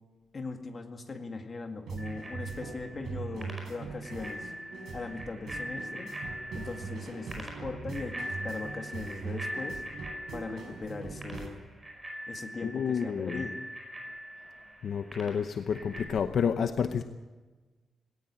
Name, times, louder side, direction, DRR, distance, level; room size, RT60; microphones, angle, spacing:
voice 1, 0.3-4.5 4.9-6.1 6.5-9.8 10.3-11.6 12.3-13.6, left 3 dB, 30° left, 5 dB, 2.0 m, -39 dB
sound 1, 1.9-11.5, right 4 dB, 75° right, 4.7 m, -41 dB
Bicycle bell, 2.0-16.0, equal, 15° right, 5.1 m, -42 dB
voice 2, 12.6-13.4 14.8-17.0, left 7 dB, 55° left, 8 dB, 0.8 m, -29 dB
18.5 x 18.0 x 8.8 m, 1.3 s
wide cardioid pair, 180°, 0 cm